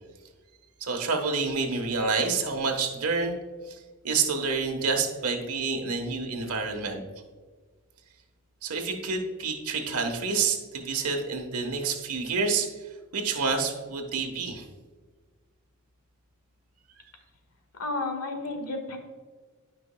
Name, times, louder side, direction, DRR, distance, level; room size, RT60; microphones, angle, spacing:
voice 1, 0.8-3.4 3.7-7.0 8.6-14.7, right 4 dB, 80° right, 3 dB, 1.2 m, -28 dB
voice 2, 17.8-19.0, left 2 dB, 85° left, 4 dB, 1.7 m, -32 dB
13.0 x 5.4 x 2.2 m, 1.4 s
head